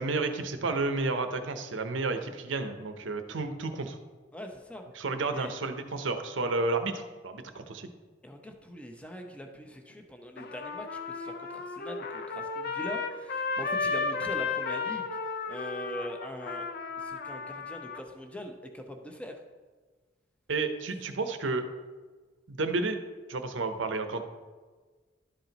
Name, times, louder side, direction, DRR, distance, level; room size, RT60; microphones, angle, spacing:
voice 1, 0.0-4.0 5.0-7.9 20.5-21.6 22.5-23.0 23.3-24.2, right 3 dB, 80° right, 8 dB, 0.7 m, -31 dB
voice 2, 4.3-4.8 5.3-5.5 8.2-15.1 15.5-16.7 17.0-19.4, equal, 5° left, 3 dB, 0.7 m, -42 dB
Trumpet, 10.4-18.0, left 4 dB, 55° left, 0.5 m, -34 dB
11.5 x 4.5 x 4.0 m, 1.4 s
head